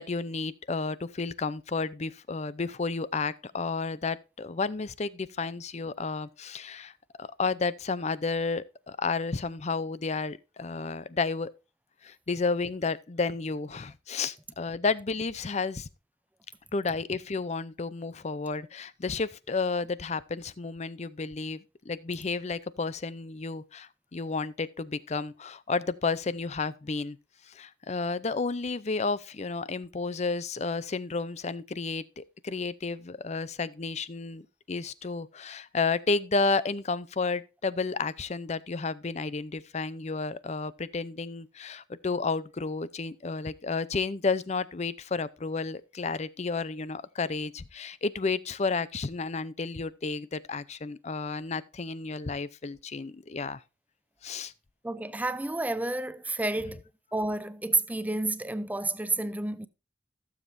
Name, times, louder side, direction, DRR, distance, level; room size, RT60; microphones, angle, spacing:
voice 1, 0.0-6.9 7.2-11.5 12.0-15.9 16.7-21.6 21.9-27.2 27.6-34.4 34.7-53.6 54.2-54.5, left 4 dB, 40° left, 0.6 m, -31 dB
voice 2, 54.8-56.8 57.1-59.7, right 2 dB, 10° right, 0.5 m, -30 dB
15.5 x 7.3 x 2.6 m
head